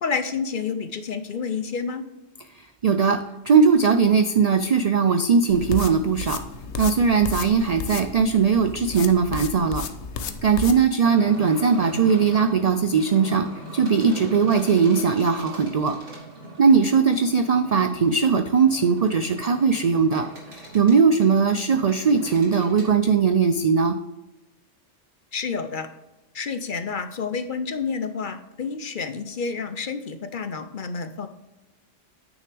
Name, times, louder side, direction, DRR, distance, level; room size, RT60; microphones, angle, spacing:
voice 1, 0.0-2.0 25.3-25.9 26.3-31.3, left 5 dB, 55° left, 9 dB, 0.7 m, -29 dB
voice 2, 2.8-6.4 6.8-9.8 10.4-13.5 13.7-16.0 16.6-24.0, right 5 dB, 60° right, 8 dB, 0.4 m, -19 dB
sound 1, 5.5-10.8, left 5 dB, 75° left, 1.0 m, -33 dB
sound 2, 11.0-22.9, right 1 dB, 85° right, 2.8 m, -41 dB
8.9 x 6.5 x 3.3 m, 1.0 s
omnidirectional pair, 1.2 m